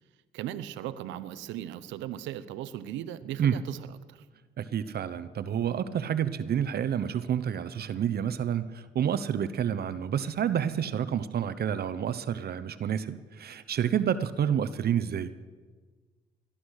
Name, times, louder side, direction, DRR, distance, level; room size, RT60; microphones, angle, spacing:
voice 1, 0.3-4.2, right 12 dB, 90° right, 14 dB, 0.8 m, -38 dB
voice 2, 4.6-15.3, right 9 dB, 60° right, 13 dB, 0.9 m, -29 dB
18.0 x 11.5 x 6.5 m, 1.4 s
supercardioid pair, 70°, 19 cm